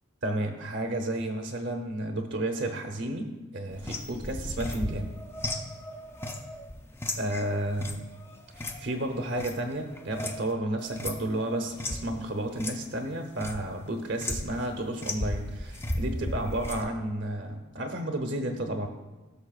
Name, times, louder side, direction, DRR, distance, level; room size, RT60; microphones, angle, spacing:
voice 1, 0.2-5.1 7.1-8.1 8.8-18.9, right 1 dB, 55° right, 4 dB, 0.8 m, -32 dB
sound 1, 3.7-10.5 10.8-12.1 12.5-12.7 13.1-13.6 14.2-14.7 15.0-16.8, left 1 dB, 10° left, 0.4 m, -35 dB
15.5 x 6.6 x 2.4 m, 1.1 s
head